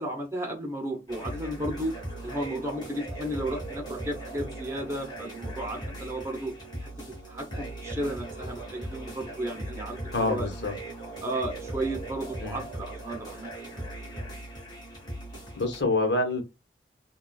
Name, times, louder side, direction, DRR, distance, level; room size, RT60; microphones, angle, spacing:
voice 1, 0.0-1.9 2.2-6.5 6.8-6.9 7.2-10.5 11.2-13.5 13.8-13.9, right 1 dB, 15° right, 0.8 m, -34 dB
sound 1, 1.1-15.8, right 1 dB, 25° left, 1.9 m, -39 dB
voice 2, 10.1-10.7 12.4-12.6 15.6-16.4, left 2 dB, 70° left, 1.1 m, -26 dB
5.8 x 2.4 x 2.3 m
head